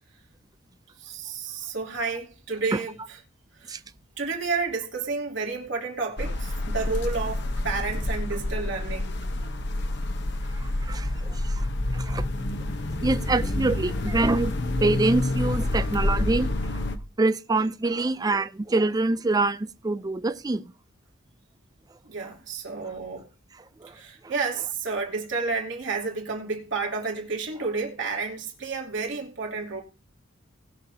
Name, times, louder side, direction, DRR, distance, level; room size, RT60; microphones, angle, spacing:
voice 1, 1.0-3.0 3.6-3.7 4.2-9.1 12.5-12.6 22.0-23.2 23.9-29.8, right 4 dB, 60° right, 2.9 m, -31 dB
sound 1, 6.2-17.0, left 1 dB, 55° left, 1.0 m, -28 dB
voice 2, 10.6-11.7 11.9-12.3 13.0-14.5 14.8-16.5 17.2-20.6 23.8-23.9 24.2-24.3, right 2 dB, 20° right, 0.4 m, -25 dB
20.0 x 6.6 x 2.8 m
head